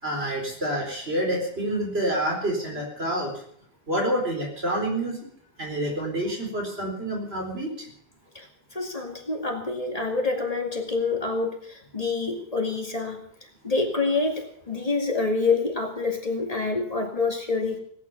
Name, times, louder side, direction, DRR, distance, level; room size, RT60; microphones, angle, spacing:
voice 1, 0.0-3.4 3.9-5.2 5.6-7.9, right 1 dB, 90° right, -1 dB, 4.7 m, -28 dB
voice 2, 8.3-17.8, left 3 dB, 40° left, 2 dB, 2.5 m, -27 dB
18.0 x 9.7 x 7.1 m, 0.65 s
omnidirectional pair, 1.0 m